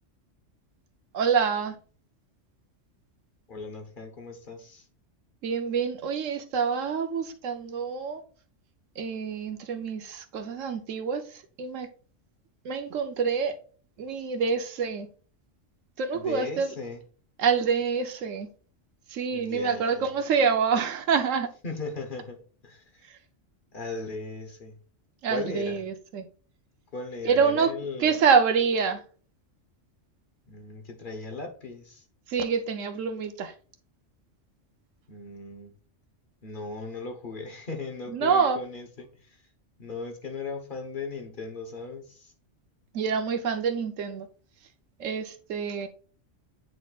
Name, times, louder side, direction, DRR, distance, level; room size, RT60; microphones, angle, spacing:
voice 1, 1.1-1.7 5.4-8.2 9.0-11.9 12.6-13.5 14.0-15.1 16.0-16.7 17.4-18.5 19.1-21.5 25.2-26.2 27.2-27.7 28.0-29.0 32.3-33.5 38.1-38.6 42.9-44.3 45.0-45.9, right 6 dB, 80° right, 1.2 m, -26 dB
voice 2, 3.5-4.9 16.1-17.0 19.3-20.1 21.6-22.4 22.6-22.8 23.7-24.8 25.3-25.8 26.9-28.2 30.5-32.0 35.1-35.7 36.4-39.1 39.8-42.3, left 3 dB, 45° left, 1.2 m, -37 dB
9.2 x 4.3 x 2.4 m
omnidirectional pair, 1.3 m